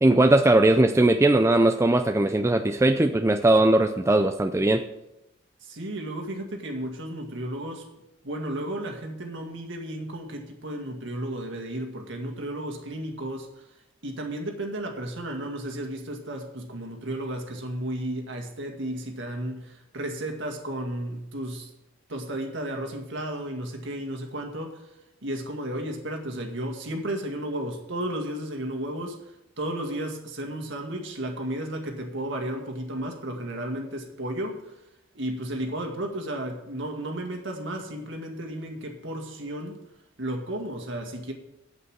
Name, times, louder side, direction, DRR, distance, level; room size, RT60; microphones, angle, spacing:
voice 1, 0.0-4.9, right 2 dB, 15° right, 6 dB, 0.4 m, -19 dB
voice 2, 5.6-7.9 8.2-13.7 14.0-21.7 22.1-24.9 25.2-34.7 35.1-39.8 40.2-41.3, right 1 dB, 60° right, 2 dB, 2.0 m, -33 dB
8.2 x 8.0 x 7.3 m, 0.89 s
head